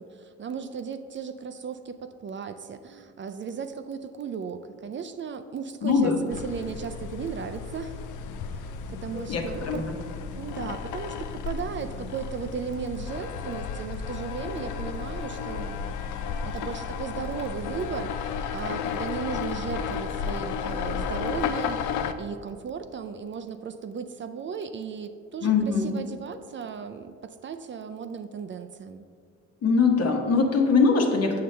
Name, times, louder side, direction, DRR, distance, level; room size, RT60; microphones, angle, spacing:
voice 1, 0.0-8.0 8.5-9.8 10.3-15.8 16.4-29.1, right 6 dB, 40° right, 9 dB, 0.4 m, -36 dB
voice 2, 5.8-6.2 9.1-9.8 25.4-25.9 29.6-31.4, left 4 dB, 55° left, 2 dB, 1.1 m, -22 dB
sound 1, 6.3-22.1, left 6 dB, 80° left, 0.5 m, -33 dB
7.6 x 6.5 x 3.3 m, 2.2 s
cardioid pair, 90°, 30 cm